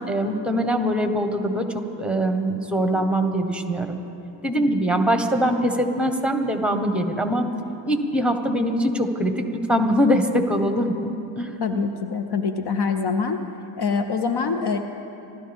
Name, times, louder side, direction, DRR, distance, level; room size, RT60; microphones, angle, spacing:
voice 1, 0.0-4.0 4.4-7.4 7.9-9.4 9.7-11.6, equal, ahead, 5 dB, 1.5 m, -23 dB
voice 2, 11.6-13.4 13.8-14.8, left 5 dB, 55° left, 7 dB, 0.9 m, -24 dB
26.0 x 12.5 x 3.6 m, 2.8 s
cardioid pair, 70°, 49 cm